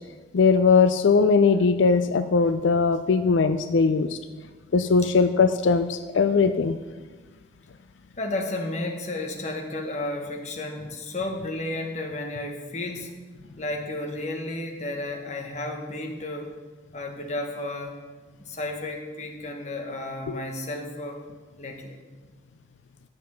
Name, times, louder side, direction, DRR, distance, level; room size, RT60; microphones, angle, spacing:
voice 1, 0.3-4.2 4.7-6.8 20.3-20.4, left 4 dB, 90° left, 10 dB, 0.4 m, -20 dB
voice 2, 8.2-13.1 13.6-16.5 16.9-18.0 18.4-21.2 21.6-22.0, left 2 dB, 40° left, 2 dB, 1.4 m, -32 dB
11.0 x 7.4 x 5.7 m, 1.3 s
head